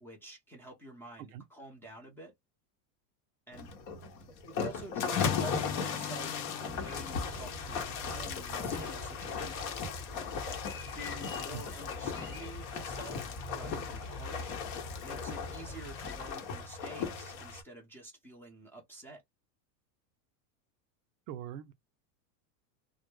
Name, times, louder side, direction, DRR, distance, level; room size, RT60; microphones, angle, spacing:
voice 1, 0.0-2.3 3.5-3.7 4.5-10.0 10.9-13.2 13.5-14.6 15.0-19.2, right 2 dB, 5° left, 0.5 m, -49 dB
sound 1, 3.5-17.6, left 6 dB, 50° left, 0.9 m, -37 dB
Acoustic guitar / Strum, 5.1-8.4, left 10 dB, 80° left, 0.7 m, -39 dB
sound 2, 6.7-16.3, left 2 dB, 20° left, 1.0 m, -45 dB
voice 2, 21.3-21.7, right 10 dB, 55° right, 0.5 m, -42 dB
2.2 x 2.0 x 3.1 m
supercardioid pair, 140°, 49 cm